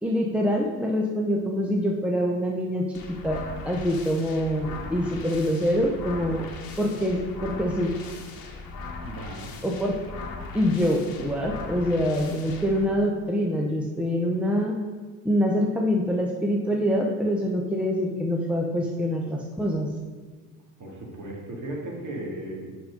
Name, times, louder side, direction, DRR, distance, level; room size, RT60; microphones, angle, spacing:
voice 1, 0.0-6.5 6.8-8.0 9.6-10.2 10.5-14.8 15.2-19.9, equal, 5° right, 0 dB, 0.9 m, -25 dB
sound 1, 2.9-12.8, left 3 dB, 55° left, 1.3 m, -39 dB
voice 2, 9.0-9.5 20.8-22.7, right 1 dB, 45° right, -2 dB, 2.3 m, -36 dB
5.8 x 5.0 x 5.3 m, 1.4 s
hypercardioid pair, 65°, 41 cm